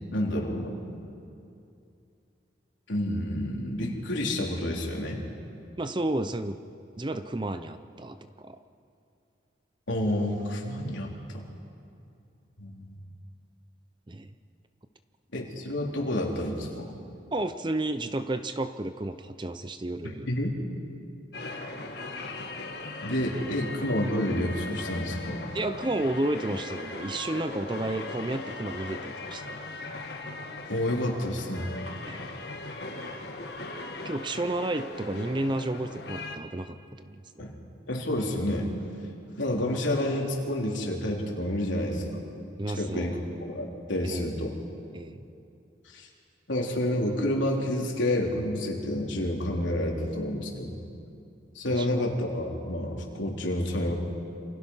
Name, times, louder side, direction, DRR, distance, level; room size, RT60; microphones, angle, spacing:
voice 1, 0.1-0.8 2.9-5.2 9.9-11.4 12.6-12.9 15.3-17.0 20.0-20.5 23.0-25.4 30.7-31.7 37.4-37.5 37.9-38.7 39.4-42.2 42.7-43.2 43.5-44.6 45.9-46.1 46.5-50.8 51.5-53.9, left 1 dB, 75° left, -1 dB, 3.8 m, -29 dB
voice 2, 5.8-6.6 7.0-8.6 14.1-14.3 17.3-20.3 23.3-23.4 25.5-29.6 32.1-32.3 33.0-33.1 34.0-37.5 42.6-43.3 44.0-44.3 44.9-45.2 51.7-51.9, right 1 dB, 25° right, 10 dB, 0.6 m, -32 dB
sound 1, 21.3-36.4, left 2 dB, 55° left, 1.6 m, -39 dB
28.0 x 26.0 x 5.7 m, 2.6 s
head